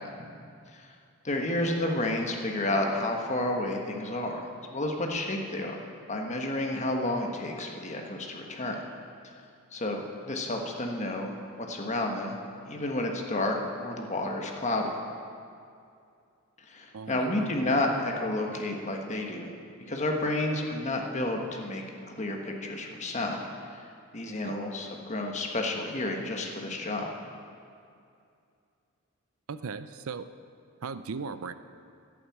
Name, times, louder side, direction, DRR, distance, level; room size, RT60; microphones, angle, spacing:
voice 1, 1.2-8.8 9.7-10.0 10.3-12.4 12.7-14.9 16.7-19.5 19.9-23.4 24.1-27.1, left 1 dB, 30° left, 2 dB, 1.4 m, -31 dB
voice 2, 16.9-17.5 24.4-24.6 29.5-30.3 30.8-31.5, right 5 dB, 75° right, 13 dB, 0.5 m, -37 dB
11.0 x 8.9 x 8.7 m, 2.4 s
head